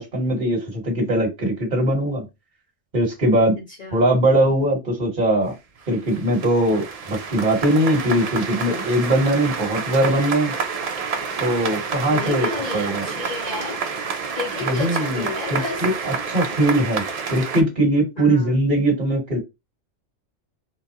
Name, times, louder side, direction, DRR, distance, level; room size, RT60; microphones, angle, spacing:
voice 1, 0.0-2.2 2.9-3.5 3.9-5.5 5.9-10.5 11.4-12.5 12.7-13.1 14.6-15.2 15.5-17.0 17.3-19.4, right 1 dB, 40° right, 1.7 m, -20 dB
voice 2, 3.5-4.1 12.1-13.9 14.3-15.8 18.2-18.6, left 3 dB, 40° left, 1.1 m, -31 dB
sound 1, 5.5-5.6 5.8-17.6, right 5 dB, 65° right, 0.3 m, -29 dB
4.1 x 2.1 x 2.8 m
omnidirectional pair, 1.3 m